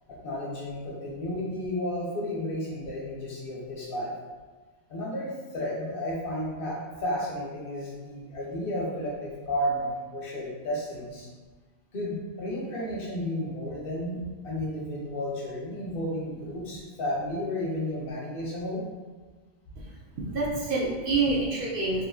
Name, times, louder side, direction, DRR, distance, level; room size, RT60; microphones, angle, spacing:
voice 1, 0.1-4.1 4.9-11.3 11.9-18.8, left 1 dB, 55° left, -3 dB, 0.8 m, -32 dB
voice 2, 20.2-22.1, right 3 dB, 60° right, -4 dB, 0.6 m, -27 dB
2.9 x 2.4 x 2.3 m, 1.4 s
omnidirectional pair, 1.2 m